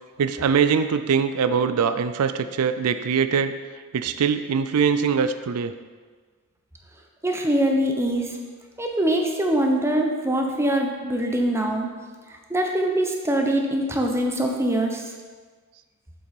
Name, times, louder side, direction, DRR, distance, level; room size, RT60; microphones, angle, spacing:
voice 1, 0.2-3.6 3.9-5.7, right 6 dB, 80° right, 11 dB, 0.4 m, -22 dB
voice 2, 7.2-8.4 8.8-11.9 12.5-15.0, right 1 dB, 10° right, 2 dB, 0.8 m, -23 dB
7.5 x 7.5 x 4.2 m, 1.5 s
head